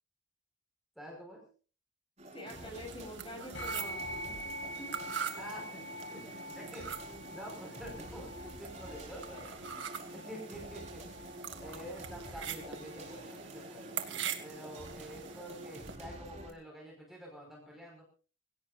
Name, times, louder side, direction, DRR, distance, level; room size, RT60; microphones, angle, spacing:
voice 1, 1.0-1.5 5.4-11.3 11.6-13.9 14.4-18.0, equal, ahead, -1 dB, 5.3 m, -48 dB
sound 1, 2.2-16.5, right 1 dB, 35° right, 4.8 m, -49 dB
voice 2, 2.3-4.4 4.8-5.0, left 1 dB, 25° left, 1 dB, 7.6 m, -46 dB
sound 2, 2.5-16.0, right 8 dB, 75° right, 2.3 m, -44 dB
sound 3, 3.5-13.2, equal, 70° left, 7.0 m, -46 dB
25.0 x 17.5 x 2.6 m, 0.38 s
head